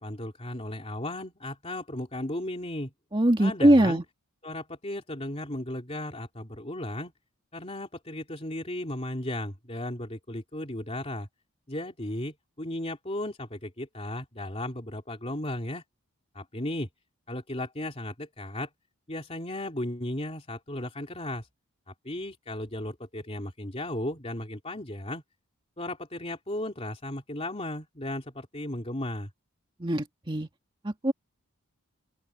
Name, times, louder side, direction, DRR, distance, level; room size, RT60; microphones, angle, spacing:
voice 1, 0.0-2.9 3.4-4.0 4.4-7.1 7.5-11.3 11.7-15.8 16.3-16.9 17.3-18.7 19.1-21.5 21.9-25.2 25.8-29.3, left 1 dB, 30° left, 3.2 m, -35 dB
voice 2, 3.1-4.0 29.8-30.5 30.8-31.1, right 1 dB, 25° right, 2.0 m, -22 dB
open air
head